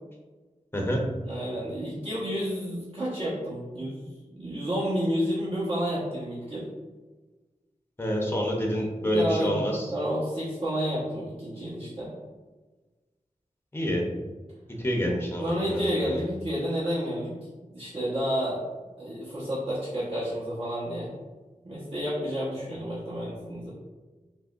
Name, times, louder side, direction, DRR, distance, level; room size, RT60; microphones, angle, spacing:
voice 1, 0.7-1.0 8.0-9.9 13.7-14.0 14.8-16.2, equal, 15° left, -1 dB, 0.7 m, -28 dB
voice 2, 1.2-6.7 9.0-12.1 15.4-17.4 17.7-18.6 19.0-21.1 21.6-23.7, equal, 45° right, -10 dB, 1.2 m, -30 dB
5.8 x 2.1 x 2.5 m, 1.3 s
wide cardioid pair, 80°, 14 cm